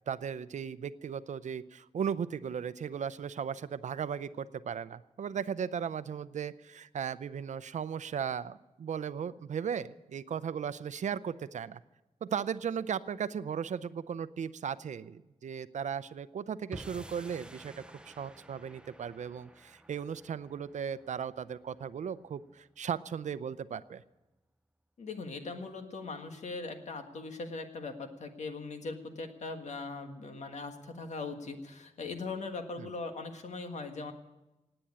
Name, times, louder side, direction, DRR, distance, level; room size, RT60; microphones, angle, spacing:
voice 1, 0.1-11.8 12.2-17.7 18.1-24.0 32.8-32.9, right 7 dB, 80° right, 15 dB, 0.6 m, -36 dB
sound 1, 16.7-23.1, right 1 dB, 10° right, 0.7 m, -52 dB
voice 2, 25.0-34.1, left 3 dB, 70° left, 6 dB, 1.7 m, -40 dB
18.5 x 8.9 x 8.6 m, 1.0 s
wide cardioid pair, 145°, 12 cm